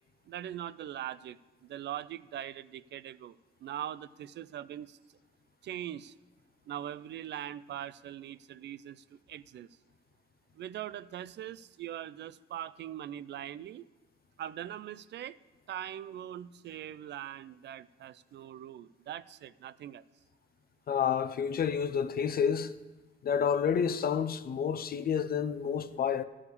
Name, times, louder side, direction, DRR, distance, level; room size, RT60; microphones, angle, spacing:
voice 1, 0.3-5.0 5.6-6.1 6.7-9.7 10.5-13.9 14.4-15.4 15.7-20.0, right 11 dB, 60° right, 0.4 m, -41 dB
voice 2, 20.9-22.7 23.2-26.2, left 7 dB, 50° left, 0.6 m, -29 dB
13.5 x 4.9 x 8.4 m
cardioid pair, 90°, 20 cm